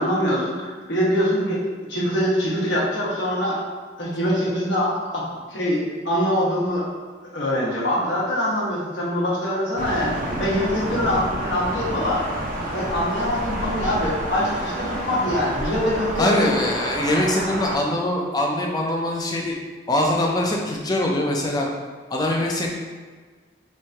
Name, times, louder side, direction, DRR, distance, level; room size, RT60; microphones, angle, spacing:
voice 1, 0.0-1.6 1.9-3.6 4.0-5.2 5.5-6.9 7.3-12.2 12.7-16.5, equal, 75° left, -6 dB, 1.1 m, -23 dB
Thunder, 9.8-17.8, right 1 dB, 45° right, 0.6 m, -29 dB
voice 2, 16.2-19.5 19.9-21.7 22.1-22.7, left 1 dB, 20° left, 0 dB, 0.4 m, -23 dB
3.1 x 2.6 x 4.4 m, 1.5 s
head